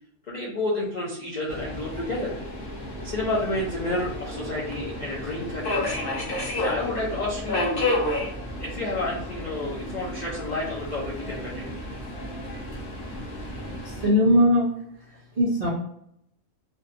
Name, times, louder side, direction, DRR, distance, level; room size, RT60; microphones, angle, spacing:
voice 1, 0.3-2.3 3.0-5.9 6.6-8.1 8.6-11.8 13.1-13.2 13.7-13.8 15.1-15.2, left 1 dB, 75° left, -4 dB, 0.4 m, -30 dB
Subway metro underground, 1.5-14.1, left 1 dB, 50° left, 0.7 m, -32 dB
voice 2, 13.8-14.7 15.4-15.7, left 1 dB, 65° right, -7 dB, 0.4 m, -19 dB
2.7 x 2.2 x 2.5 m, 0.72 s
omnidirectional pair, 1.4 m